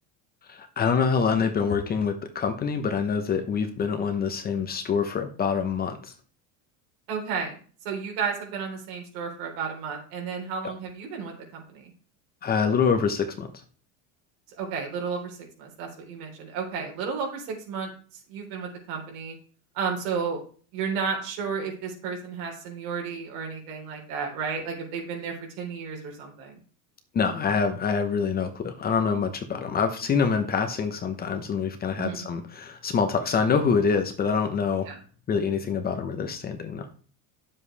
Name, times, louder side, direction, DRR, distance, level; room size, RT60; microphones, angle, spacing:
voice 1, 0.5-6.1 12.4-13.5 27.1-34.9 35.3-36.9, left 6 dB, 20° left, 7 dB, 0.9 m, -25 dB
voice 2, 7.1-7.6 7.8-11.9 14.6-17.9 18.3-19.4 19.7-20.4 20.7-26.6 32.0-32.3 34.9-35.0, right 5 dB, 70° right, 1 dB, 3.9 m, -32 dB
10.5 x 7.4 x 3.4 m, 0.42 s
cardioid pair, 155°, 41 cm